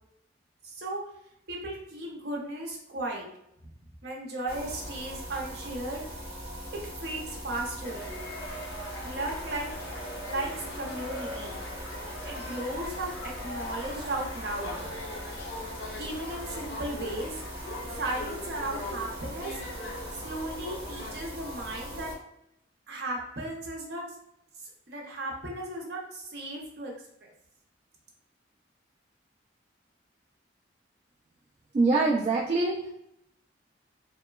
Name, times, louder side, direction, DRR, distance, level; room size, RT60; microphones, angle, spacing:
voice 1, 0.6-1.0 1.5-3.3 4.0-6.0 6.7-8.0 9.0-9.7 10.3-11.7 12.2-14.9 16.0-17.4 17.9-19.5 20.1-22.1 22.9-24.0 24.9-26.9 27.2-27.3, right 2 dB, 60° right, -1 dB, 0.7 m, -35 dB
sound 1, 4.5-22.2, equal, 15° right, 1.1 m, -41 dB
sound 2, 7.8-21.2, left 1 dB, 70° left, 0.6 m, -41 dB
voice 2, 31.7-32.9, right 3 dB, 35° right, -4 dB, 0.3 m, -24 dB
2.8 x 2.1 x 2.3 m, 0.79 s
head